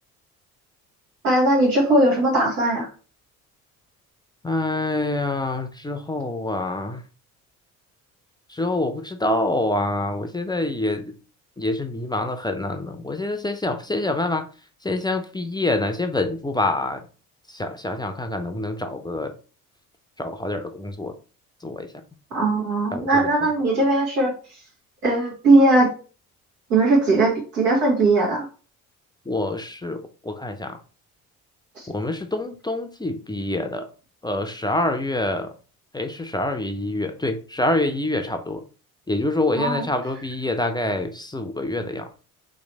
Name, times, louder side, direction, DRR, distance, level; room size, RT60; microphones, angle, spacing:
voice 1, 1.2-2.9 22.3-24.3 25.0-25.9 26.7-28.5 31.8-31.9 39.6-39.8, right 2 dB, 90° right, 1.4 m, -19 dB
voice 2, 4.4-7.0 8.5-11.1 11.6-14.5 14.8-17.0 17.5-19.3 20.2-21.1 21.6-21.9 22.9-23.3 29.3-30.8 31.9-33.9 34.2-35.5 35.9-38.6 39.1-42.1, left 2 dB, 10° left, 0.5 m, -26 dB
3.1 x 3.1 x 3.9 m
hypercardioid pair, 55°, 43 cm